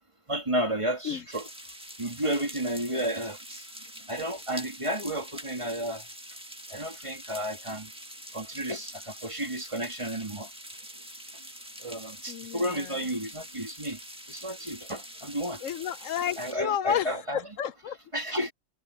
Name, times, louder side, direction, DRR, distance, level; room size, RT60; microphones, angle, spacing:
voice 1, 0.3-1.5 2.0-3.6 4.1-6.0 6.7-7.9 8.3-10.5 11.8-14.0 14.3-15.6 16.4-17.4 18.1-18.5, right 1 dB, 20° right, 2.5 m, -32 dB
sound 1, 1.3-16.5, equal, 5° right, 1.4 m, -45 dB
voice 2, 12.3-12.9 15.6-18.0, left 9 dB, 70° left, 1.0 m, -31 dB
omnidirectional pair, 1.4 m